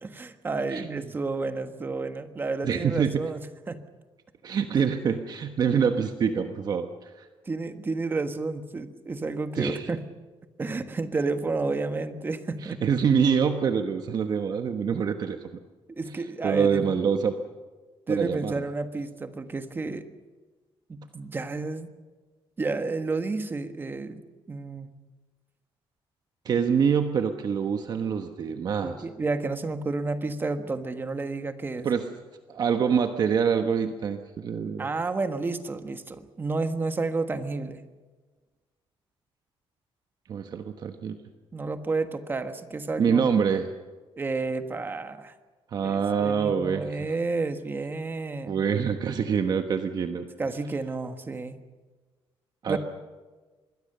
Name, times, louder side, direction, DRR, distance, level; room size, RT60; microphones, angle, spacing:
voice 1, 0.0-3.4 3.7-3.8 4.7-4.8 7.4-10.0 10.6-12.8 15.9-16.9 18.1-20.0 20.9-21.9 22.6-24.2 24.5-24.9 28.8-31.9 34.8-37.8 41.5-43.3 44.2-45.3 45.8-48.7 50.4-51.6 52.7-52.8, right 3 dB, 20° right, 8 dB, 1.5 m, -31 dB
voice 2, 0.7-1.0 2.6-3.2 4.4-7.3 9.5-9.9 12.6-15.4 16.4-17.4 18.1-18.6 26.4-29.0 31.8-32.0 32.5-34.9 40.3-41.2 43.0-43.6 45.7-46.9 48.5-50.3 52.6-52.8, right 7 dB, 45° right, 6 dB, 1.2 m, -25 dB
26.0 x 21.0 x 6.8 m, 1.3 s
cardioid pair, 160°, 10 cm